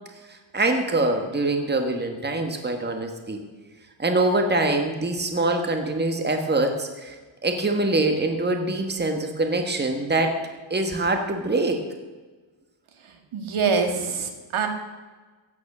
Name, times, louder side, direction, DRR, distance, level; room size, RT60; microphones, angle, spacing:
voice 1, 0.5-3.4 4.0-7.1 7.4-11.8, right 2 dB, 20° right, 5 dB, 1.5 m, -24 dB
voice 2, 13.3-14.7, right 5 dB, 75° right, 5 dB, 2.1 m, -24 dB
15.5 x 9.5 x 6.2 m, 1.3 s
wide cardioid pair, 130°, 50 cm